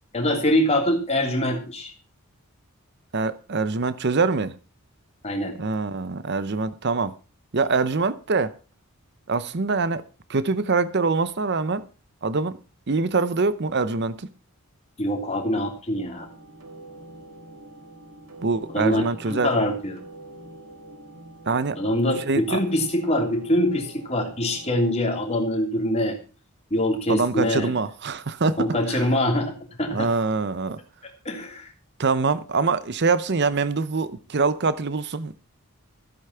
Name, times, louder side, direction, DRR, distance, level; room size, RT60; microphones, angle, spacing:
voice 1, 0.1-1.9 5.2-5.6 15.0-16.3 18.7-20.0 21.8-26.2 26.7-27.7 28.6-29.5 29.8-30.1 31.2-31.7, left 1 dB, 30° left, 3.2 m, -24 dB
voice 2, 3.1-4.5 5.6-7.1 7.5-8.5 9.3-10.0 10.3-11.8 12.2-12.6 12.9-14.3 18.4-19.5 21.5-21.8 22.3-22.6 27.1-29.1 29.9-30.8 32.0-35.3, right 4 dB, 50° right, 0.7 m, -24 dB
sound 1, 16.1-24.9, right 1 dB, 85° right, 2.0 m, -45 dB
15.0 x 8.4 x 5.7 m
head